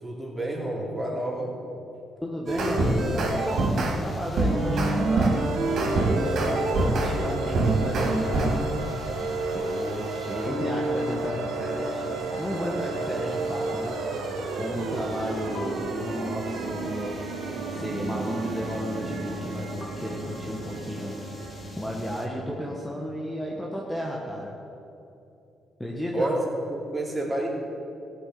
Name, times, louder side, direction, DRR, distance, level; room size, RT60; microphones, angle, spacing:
voice 1, 0.0-1.5 26.1-26.4 26.7-27.5, right 1 dB, 15° right, -2 dB, 3.5 m, -29 dB
voice 2, 2.2-5.5 6.1-8.7 9.5-14.0 14.6-17.2 17.7-21.2 21.8-24.6 25.8-26.3, equal, 5° left, -3 dB, 1.6 m, -33 dB
sound 1, 2.5-22.3, left 2 dB, 35° left, 1.7 m, -39 dB
sound 2, 2.5-3.9 4.4-7.1 7.5-8.5, right 2 dB, 65° right, 3.6 m, -24 dB
sound 3, 4.4-23.0, right 4 dB, 85° right, 1.3 m, -33 dB
16.0 x 6.5 x 9.5 m, 2.9 s
cardioid pair, 90°, 0 cm